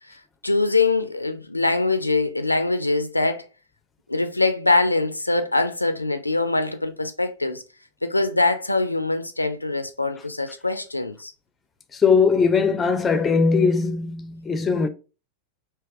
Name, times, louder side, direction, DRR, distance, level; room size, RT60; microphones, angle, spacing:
voice 1, 0.4-3.5 4.1-7.6 8.0-11.3, left 3 dB, 85° left, 0.4 m, -23 dB
voice 2, 11.9-14.9, left 5 dB, 20° left, 0.5 m, -20 dB
3.3 x 2.8 x 3.3 m
figure-of-eight pair, 90°, 0 cm